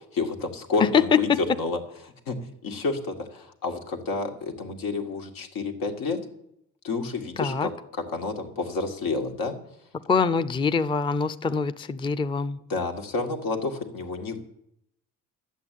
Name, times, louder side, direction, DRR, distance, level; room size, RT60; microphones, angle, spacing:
voice 1, 0.1-6.2 6.8-7.7 8.1-9.6 12.7-14.4, left 3 dB, 90° left, 3 dB, 2.0 m, -30 dB
voice 2, 7.4-7.7 10.1-12.6, left 4 dB, 15° left, 11 dB, 0.4 m, -25 dB
12.0 x 8.0 x 9.2 m, 0.77 s
cardioid pair, 130°, 33 cm